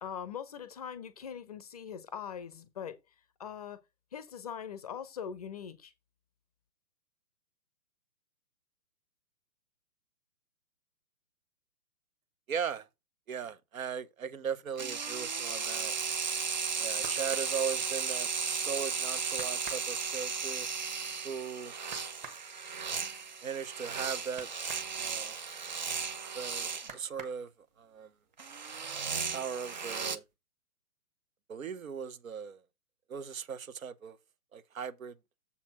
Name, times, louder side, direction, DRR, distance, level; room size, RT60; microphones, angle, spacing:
voice 1, 0.0-3.0 3.4-3.8 4.1-5.9, left 8 dB, 25° left, 0.6 m, -41 dB
voice 2, 12.5-12.9 13.3-16.0 16.8-20.7 21.2-21.7 23.4-24.5 24.9-25.4 26.3-27.5 27.8-28.1 29.3-30.2 31.5-32.6 33.1-34.2 34.5-35.2, right 7 dB, 60° right, 1.0 m, -38 dB
sound 1, 14.8-26.9 28.4-30.2, right 5 dB, 30° right, 0.4 m, -35 dB
sound 2, 17.0-18.6 18.9-19.0 19.3-24.9 25.3-26.4 26.8-27.9 28.3-28.9 29.2-29.9 30.2-30.3, right 4 dB, 15° right, 1.2 m, -50 dB
7.2 x 4.2 x 5.9 m
figure-of-eight pair, 130°, 46 cm